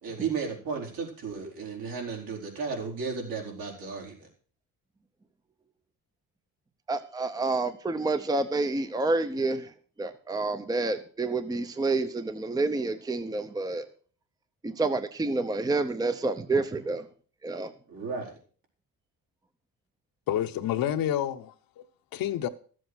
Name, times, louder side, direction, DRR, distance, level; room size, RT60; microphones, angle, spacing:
voice 1, 0.0-4.3 17.9-18.3, right 5 dB, 70° right, 4.6 m, -34 dB
voice 2, 6.9-9.7 10.0-13.9 14.6-17.1 17.4-17.7, right 3 dB, 10° right, 0.7 m, -28 dB
voice 3, 20.3-21.8 22.1-22.5, left 11 dB, 70° left, 1.1 m, -29 dB
13.5 x 7.8 x 6.2 m
cardioid pair, 135°, 35 cm